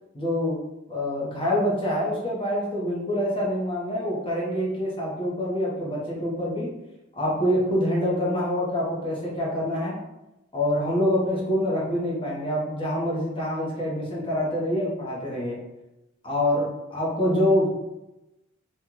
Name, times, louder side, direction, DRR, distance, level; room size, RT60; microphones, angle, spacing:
voice 1, 0.1-0.6 0.9-6.7 7.2-10.0 10.5-15.6 16.2-17.7, equal, 25° left, -6 dB, 1.0 m, -26 dB
3.0 x 2.5 x 3.8 m, 0.95 s
head